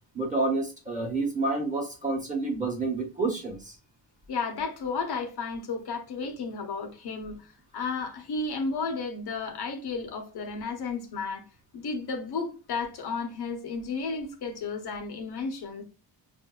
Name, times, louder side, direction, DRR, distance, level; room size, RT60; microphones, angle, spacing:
voice 1, 0.1-3.8, right 3 dB, 20° right, 1.1 m, -29 dB
voice 2, 4.3-11.4 11.7-15.8, left 4 dB, 70° left, 1.0 m, -33 dB
5.4 x 2.6 x 2.3 m
wide cardioid pair, 150°, 40 cm